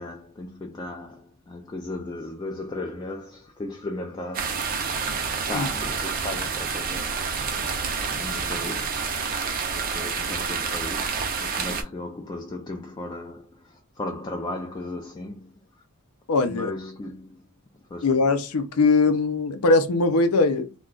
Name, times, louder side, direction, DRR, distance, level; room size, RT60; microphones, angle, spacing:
voice 1, 0.0-5.0 5.5-7.2 8.0-9.2 9.6-15.6 16.5-17.5 17.9-18.2, left 2 dB, 20° left, 0.3 m, -36 dB
sound 1, 4.3-11.8, right 5 dB, 40° right, 0.5 m, -28 dB
voice 2, 16.3-16.7 18.0-20.7, left 3 dB, 70° left, 0.5 m, -21 dB
2.3 x 2.2 x 3.7 m
head